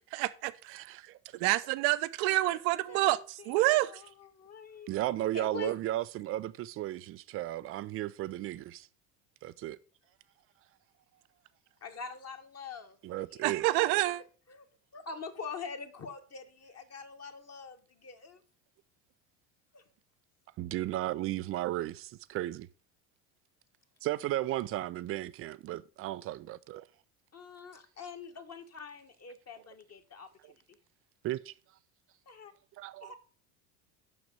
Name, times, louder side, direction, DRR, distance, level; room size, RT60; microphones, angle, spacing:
voice 1, 0.1-0.9 1.4-3.2 3.5-3.9 13.4-14.2, right 18 dB, 55° right, 0.8 m, -27 dB
voice 2, 0.7-1.2 4.9-8.9 9.4-9.8 13.0-13.7 20.6-22.7 24.0-26.8 31.2-31.5 32.8-33.1, right 15 dB, 30° right, 0.4 m, -35 dB
voice 3, 3.4-4.9 5.3-5.7 11.8-13.0 13.3-14.7 14.9-18.4 19.7-19.8 27.3-30.8 32.3-32.5 33.0-33.1, left 5 dB, 30° left, 1.4 m, -45 dB
6.3 x 5.9 x 6.6 m
hypercardioid pair, 75°, 50 cm